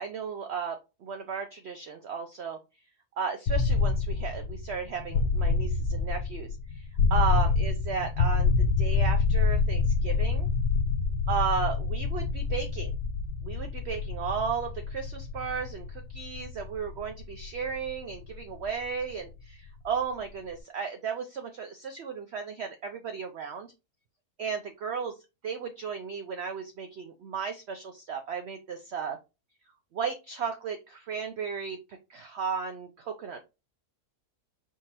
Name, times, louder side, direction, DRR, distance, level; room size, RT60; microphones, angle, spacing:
voice 1, 0.0-2.6 3.2-10.5 11.3-12.9 13.4-23.7 24.4-25.2 25.4-29.2 29.9-31.8 32.1-33.5, right 6 dB, 70° right, 6 dB, 0.6 m, -34 dB
sound 1, 3.5-19.3, left 4 dB, 90° left, 1.2 m, -27 dB
4.6 x 3.6 x 2.8 m, 0.27 s
omnidirectional pair, 1.7 m